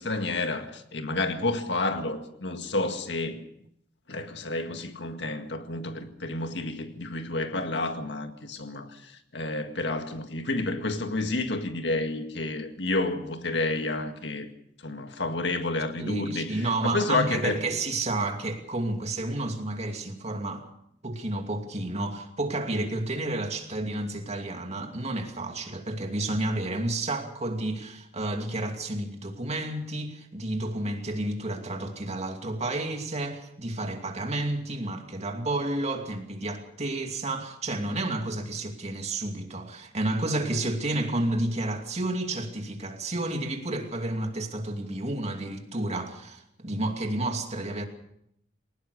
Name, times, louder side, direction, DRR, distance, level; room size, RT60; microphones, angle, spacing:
voice 1, 0.0-3.4 4.1-14.5 14.8-17.6, left 2 dB, 70° left, 1.9 m, -30 dB
voice 2, 16.0-20.6 21.0-47.8, right 2 dB, 40° right, 2.6 m, -31 dB
22.0 x 19.0 x 6.5 m
head